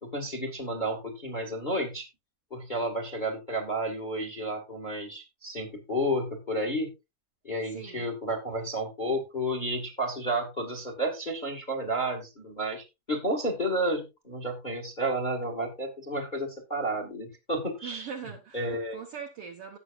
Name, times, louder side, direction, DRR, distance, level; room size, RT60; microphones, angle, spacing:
voice 1, 0.0-2.0 2.5-6.9 7.4-18.1 18.5-19.0, right 1 dB, 15° left, 1.8 m, -31 dB
voice 2, 7.7-8.0 17.8-19.8, right 7 dB, 60° right, 1.8 m, -41 dB
17.0 x 6.5 x 2.6 m
omnidirectional pair, 3.7 m